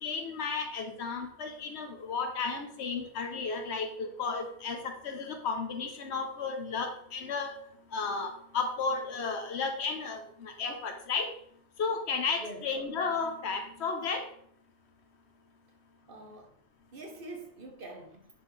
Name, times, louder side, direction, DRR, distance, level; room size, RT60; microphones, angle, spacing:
voice 1, 0.0-7.5 7.9-11.3 11.8-14.3, left 4 dB, 70° left, 1.3 m, -33 dB
voice 2, 12.4-12.7 16.1-16.5 16.9-18.3, right 2 dB, 50° right, 1.3 m, -45 dB
7.5 x 6.1 x 3.3 m
omnidirectional pair, 1.2 m